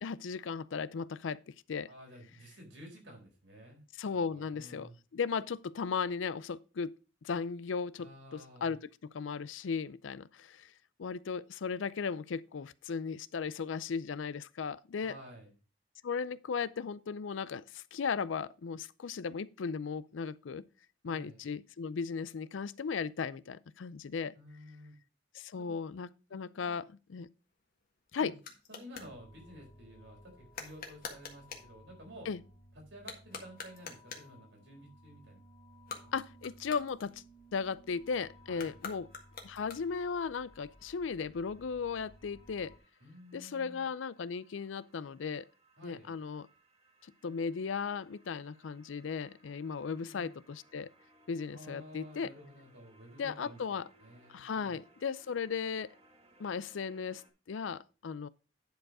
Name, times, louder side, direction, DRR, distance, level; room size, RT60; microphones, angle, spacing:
voice 1, 0.0-1.9 4.0-7.0 7.2-10.7 11.0-15.2 16.0-20.7 21.0-24.3 25.3-27.3 28.1-28.3 32.3-32.4 36.1-37.2 37.5-39.1 39.4-42.7 43.3-45.5 45.8-46.5 47.0-50.9 51.3-52.3 53.2-53.9 54.3-55.9 56.4-58.3, left 5 dB, 85° left, 0.5 m, -36 dB
voice 2, 1.9-3.8 4.3-4.9 8.0-8.7 15.0-15.5 21.0-21.4 24.4-25.0 25.6-25.7 26.3-26.7 28.2-28.3 28.7-32.3 32.9-35.4 36.0-36.1 38.5-38.8 43.0-43.9 45.8-46.1 49.9-50.3 51.5-54.8, equal, 75° right, 4.1 m, -52 dB
sound 1, 27.4-29.1 30.5-31.7 32.9-34.4 35.7-37.5 38.5-40.1, left 5 dB, 50° left, 1.5 m, -47 dB
sound 2, 28.9-42.8, equal, 30° left, 2.0 m, -59 dB
sound 3, 37.9-57.3, right 1 dB, 35° right, 1.7 m, -66 dB
10.5 x 4.7 x 4.8 m
head